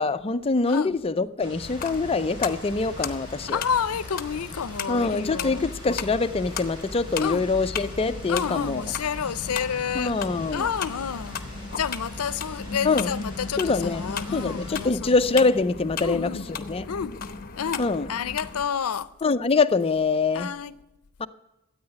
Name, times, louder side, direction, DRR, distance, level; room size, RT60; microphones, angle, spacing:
voice 1, 0.0-3.6 4.9-8.9 9.9-10.7 12.8-13.1 13.6-16.9 17.8-18.1 19.2-20.5 21.2-21.3, left 3 dB, 25° left, 0.5 m, -24 dB
sound 1, 1.4-14.9, equal, 25° right, 3.7 m, -42 dB
sound 2, 1.6-18.7, left 5 dB, 45° left, 0.9 m, -36 dB
voice 2, 3.5-5.7 7.2-7.5 8.3-10.1 10.5-11.4 11.7-15.1 16.0-16.5 16.9-17.2 17.6-19.1 20.3-20.7, left 7 dB, 85° left, 0.6 m, -30 dB
13.5 x 8.8 x 9.8 m
head